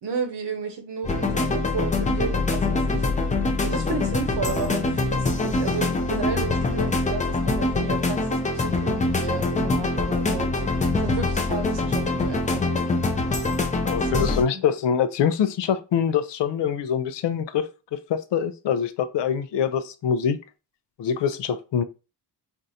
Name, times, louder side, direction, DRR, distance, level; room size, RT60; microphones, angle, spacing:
voice 1, 0.0-3.1 3.6-10.7 11.0-12.6 14.1-14.6, right 5 dB, 85° right, 1.0 m, -33 dB
sound 1, 1.0-14.4, left 3 dB, 20° left, 0.5 m, -24 dB
voice 2, 13.8-20.4 21.0-21.8, left 7 dB, 90° left, 0.6 m, -24 dB
4.4 x 2.5 x 2.7 m
wide cardioid pair, 160°, 41 cm